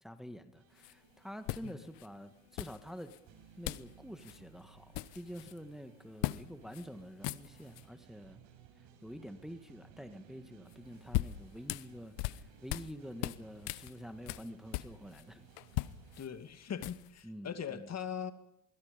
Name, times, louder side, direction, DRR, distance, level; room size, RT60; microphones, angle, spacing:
voice 1, 0.0-3.1 3.6-8.4 9.0-15.4 17.2-17.9, equal, ahead, 9 dB, 2.0 m, -48 dB
sound 1, 0.5-16.2, right 8 dB, 65° right, 7.6 m, -60 dB
sound 2, 0.8-0.9 1.5-2.1 2.6-3.2 3.6-3.9 4.2-4.4 4.7-5.6 6.2-6.4 6.7-6.9 7.1-7.8 10.7-12.9 13.2-15.2 15.6-17.2, left 19 dB, 70° left, 1.1 m, -39 dB
voice 2, 16.2-18.3, left 8 dB, 35° left, 10 dB, 2.4 m, -41 dB
25.0 x 23.5 x 5.3 m, 0.78 s
supercardioid pair, 105°, 46 cm